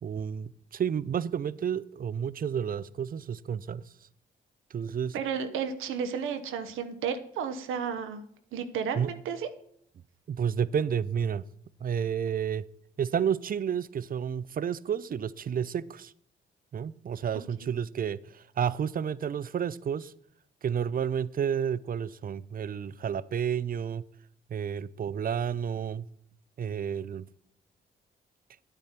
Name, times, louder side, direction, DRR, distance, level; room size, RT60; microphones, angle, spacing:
voice 1, 0.0-3.8 4.7-5.2 9.0-9.1 10.3-11.4 11.8-12.6 13.0-16.1 16.7-20.1 20.6-24.0 24.5-26.0 26.6-27.3, right 8 dB, 45° right, 0.5 m, -31 dB
voice 2, 5.1-8.3 8.5-9.5 17.3-17.7, right 7 dB, 80° right, 0.8 m, -33 dB
9.1 x 8.7 x 4.4 m
supercardioid pair, 50°, 21 cm